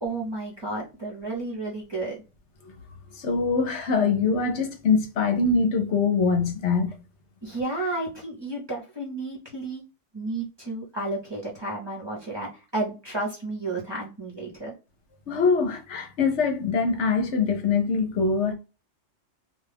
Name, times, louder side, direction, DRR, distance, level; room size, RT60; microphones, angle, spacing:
voice 1, 0.0-2.2 7.4-9.8 10.1-14.7, right 2 dB, 25° right, 0.8 m, -32 dB
voice 2, 3.1-6.9 15.3-18.5, left 4 dB, 75° left, 1.0 m, -23 dB
2.3 x 2.3 x 3.3 m
omnidirectional pair, 1.2 m